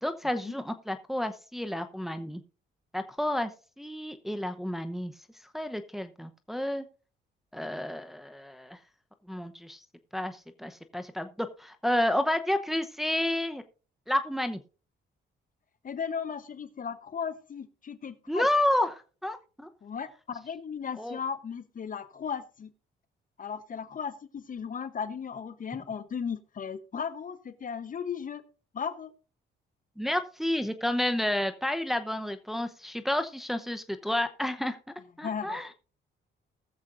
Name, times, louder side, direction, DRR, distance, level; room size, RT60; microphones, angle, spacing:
voice 1, 0.0-2.4 2.9-3.5 3.8-5.1 5.5-6.8 7.5-8.8 9.3-9.8 10.1-13.6 14.1-14.6 18.3-19.7 21.0-21.2 30.0-34.8 35.2-35.7, left 1 dB, ahead, 8 dB, 0.8 m, -30 dB
voice 2, 15.8-18.5 19.8-22.7 23.4-28.4 28.7-29.1 35.2-35.6, left 6 dB, 45° left, 12 dB, 0.9 m, -36 dB
20.0 x 7.3 x 2.6 m, 0.37 s
cardioid pair, 90°, 20 cm